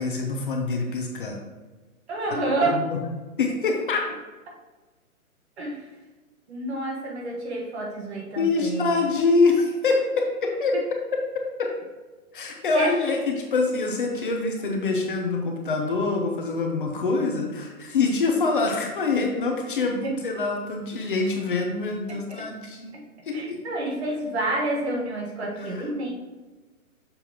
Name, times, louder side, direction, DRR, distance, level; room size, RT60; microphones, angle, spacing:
voice 1, 0.0-1.4 2.6-3.0 3.4-4.0 8.4-10.8 11.1-11.2 11.6-11.7 12.3-23.0 23.2-23.6 25.6-25.8, left 3 dB, 35° left, 2 dB, 0.7 m, -25 dB
voice 2, 2.1-2.8 5.6-5.9 6.5-9.1 10.7-10.8 12.7-12.9 18.3-18.4 20.0-20.1 22.1-22.5 22.9-23.0 23.3-26.1, right 2 dB, 45° right, 0 dB, 1.4 m, -29 dB
6.9 x 5.3 x 2.9 m, 1.3 s
hypercardioid pair, 165°, 44 cm